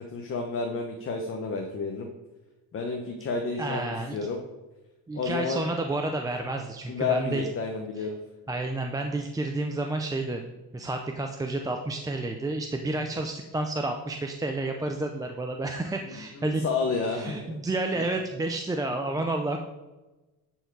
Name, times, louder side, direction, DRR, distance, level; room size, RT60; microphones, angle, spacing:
voice 1, 0.1-2.1 2.7-4.4 5.1-5.6 6.9-8.2 16.4-17.5, left 4 dB, 35° left, 2 dB, 0.9 m, -30 dB
voice 2, 3.6-4.2 5.1-7.5 8.0-8.1 8.5-16.6 17.1-19.6, right 2 dB, 10° right, 4 dB, 0.5 m, -30 dB
10.5 x 4.6 x 4.6 m, 1.1 s
cardioid pair, 125°, 38 cm